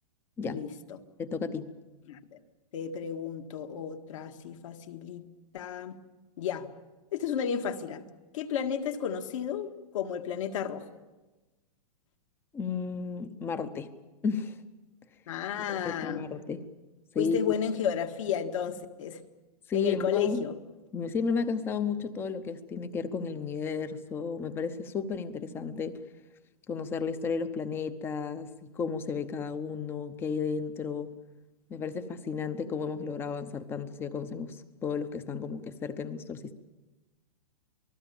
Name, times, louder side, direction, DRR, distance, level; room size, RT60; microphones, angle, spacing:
voice 1, 0.4-1.0 2.1-2.4 2.7-5.2 5.5-6.0 6.4-6.7 7.1-8.0 8.3-9.7 9.9-10.9 15.3-16.3 17.2-19.2 19.7-20.5, left 8 dB, 55° left, 6 dB, 1.9 m, -32 dB
voice 2, 1.2-1.7 12.5-13.9 14.2-14.6 15.7-16.7 17.1-17.5 19.7-20.5 20.9-26.0 26.7-31.1 31.7-36.5, left 5 dB, 10° left, 13 dB, 0.8 m, -33 dB
28.0 x 19.5 x 7.1 m, 1.2 s
hypercardioid pair, 165°, 20 cm